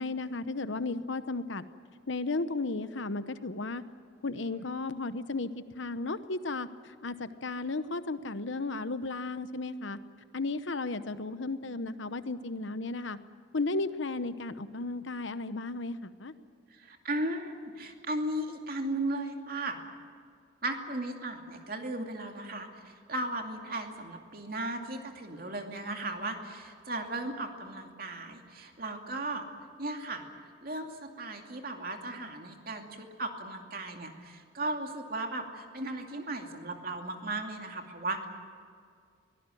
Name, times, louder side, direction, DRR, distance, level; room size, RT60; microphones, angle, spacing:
voice 1, 0.0-1.7 2.1-3.8 4.2-10.0 10.3-13.2 13.5-16.3, left 3 dB, 70° left, 12 dB, 0.9 m, -34 dB
voice 2, 16.7-19.8 20.6-29.4 29.8-38.3, right 2 dB, 50° right, 3 dB, 2.5 m, -36 dB
23.0 x 18.0 x 9.3 m, 2.2 s
head